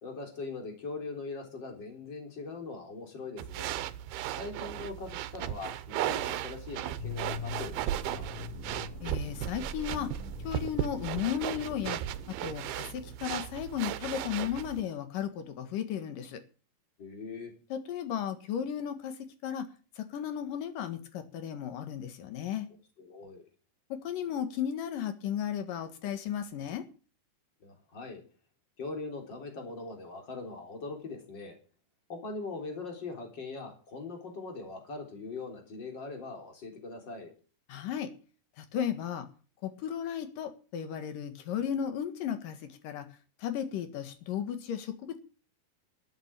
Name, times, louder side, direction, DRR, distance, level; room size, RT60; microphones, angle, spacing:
voice 1, 0.0-3.8 4.4-8.4 17.0-17.5 23.0-23.4 27.6-28.2 28.8-31.6 32.1-37.3, left 3 dB, 30° left, 2 dB, 4.3 m, -41 dB
sound 1, 3.4-14.8, right 12 dB, 90° right, 2.8 m, -36 dB
sound 2, 7.0-13.1, left 4 dB, 10° left, 6.1 m, -43 dB
voice 2, 9.0-10.1 10.4-12.0 12.4-16.4 17.7-19.7 20.0-22.7 23.9-26.8 37.7-38.1 38.6-39.3 39.6-43.1 43.4-45.2, left 9 dB, 65° left, 9 dB, 3.2 m, -35 dB
12.5 x 8.8 x 8.9 m, 0.38 s
omnidirectional pair, 4.3 m